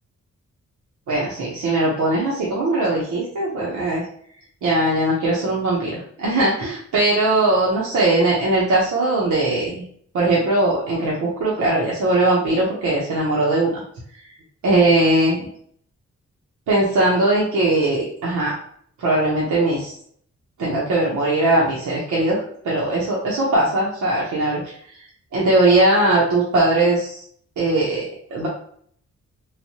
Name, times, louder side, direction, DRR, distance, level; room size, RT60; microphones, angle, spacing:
voice 1, 1.1-4.0 4.6-9.8 10.1-13.8 14.6-15.5 16.7-18.5 19.0-19.9 20.6-24.6 25.3-27.2 27.6-28.5, right 2 dB, 80° right, -5 dB, 0.8 m, -20 dB
3.2 x 2.2 x 2.8 m, 0.62 s
cardioid pair, 95°, 29 cm